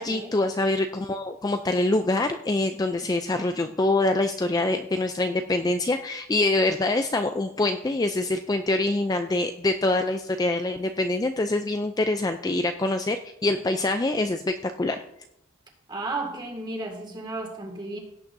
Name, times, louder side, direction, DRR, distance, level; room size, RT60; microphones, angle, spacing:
voice 1, 0.0-15.0, left 2 dB, 20° left, 6 dB, 0.3 m, -25 dB
voice 2, 15.9-18.0, right 2 dB, 20° right, 2 dB, 2.0 m, -33 dB
17.0 x 8.6 x 2.6 m, 0.83 s
head